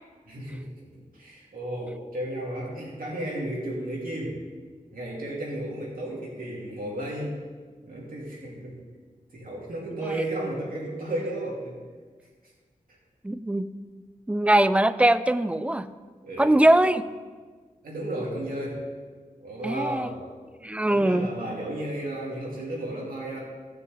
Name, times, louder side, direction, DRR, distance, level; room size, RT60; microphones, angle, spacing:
voice 1, 0.3-0.9 1.2-4.4 4.9-7.3 7.8-8.8 9.3-11.8 16.2-16.6 17.8-18.8 19.4-20.2 20.9-23.4, right 1 dB, 85° right, -4 dB, 3.0 m, -33 dB
voice 2, 13.2-13.7 14.3-15.9 16.4-17.0 19.6-20.1 20.6-21.3, right 1 dB, 10° right, 13 dB, 0.4 m, -21 dB
15.0 x 6.8 x 3.7 m, 1.5 s
wide cardioid pair, 65°, 14 cm